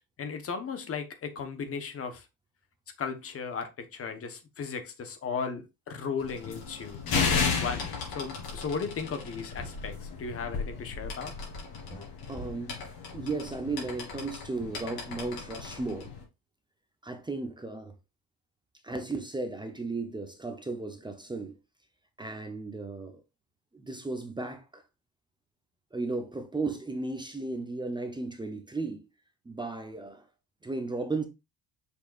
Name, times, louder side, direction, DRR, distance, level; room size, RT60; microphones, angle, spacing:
voice 1, 0.2-2.2 3.0-7.0 7.6-11.3, left 5 dB, 35° left, 1.2 m, -36 dB
sound 1, 6.2-16.2, left 5 dB, 65° left, 3.3 m, -34 dB
sound 2, 9.1-9.3 9.6-9.8 11.9-12.1 12.4-12.5, equal, 20° left, 1.7 m, -42 dB
voice 2, 12.3-12.8 13.1-16.1 17.0-17.9 18.8-21.6 22.2-23.2 23.7-24.8 25.9-29.0 29.4-30.2 30.6-31.2, right 3 dB, 10° right, 0.8 m, -35 dB
6.6 x 5.7 x 2.5 m
cardioid pair, 160°, 39 cm